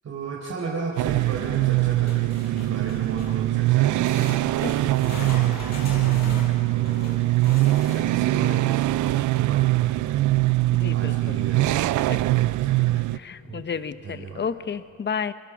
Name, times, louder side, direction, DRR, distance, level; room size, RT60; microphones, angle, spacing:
voice 1, 0.0-7.3 7.7-10.3 10.9-13.0 13.5-13.6 14.0-14.5, right 4 dB, 55° right, -2 dB, 4.4 m, -35 dB
sound 1, 1.0-13.2, right 17 dB, 75° right, 0.5 m, -22 dB
sound 2, 2.1-3.5 4.0-8.3 11.6-11.7 12.0-12.1 12.9-13.0, left 3 dB, 60° left, 6.1 m, -39 dB
voice 2, 4.6-4.9 5.5-5.6 10.8-11.4 11.7-11.8 13.1-15.3, left 6 dB, 35° left, 12 dB, 1.1 m, -32 dB
27.5 x 24.5 x 6.3 m, 2.2 s
cardioid pair, 90°, 30 cm